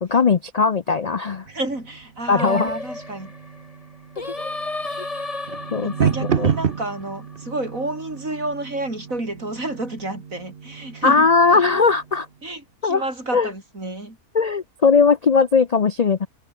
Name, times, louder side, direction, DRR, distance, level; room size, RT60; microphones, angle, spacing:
voice 1, 0.0-1.4 2.3-2.7 5.7-5.9 6.4-6.5 11.0-12.3 12.8-13.0 13.3-13.5 14.3-16.3, left 5 dB, 60° left, 0.4 m, -18 dB
sound 1, 1.4-12.2, right 7 dB, 45° right, 1.0 m, -30 dB
voice 2, 1.5-3.3 5.8-11.3 12.4-14.2, right 2 dB, 60° right, 7.1 m, -30 dB
Singing, 2.4-7.7, left 2 dB, 20° left, 2.1 m, -33 dB
omnidirectional pair, 1.6 m